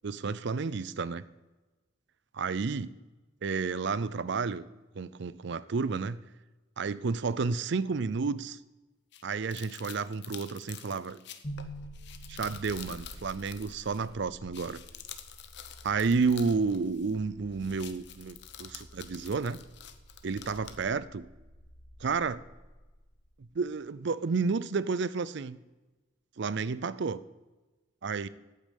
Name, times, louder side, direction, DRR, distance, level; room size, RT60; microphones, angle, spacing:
voice 1, 0.0-1.2 2.3-2.9 3.4-4.7 5.0-6.2 6.8-8.6 9.2-11.2 12.3-14.8 15.8-19.6 20.2-21.3 22.0-22.4 23.4-25.6 26.4-27.2 28.0-28.3, right 4 dB, 55° right, 17 dB, 0.5 m, -31 dB
sound 1, 9.1-14.1 14.4-17.3 17.5-20.8, left 10 dB, 55° left, 0.8 m, -48 dB
sound 2, 11.4-23.5, right 1 dB, 35° left, 1.5 m, -49 dB
8.8 x 8.5 x 8.2 m, 1.2 s
head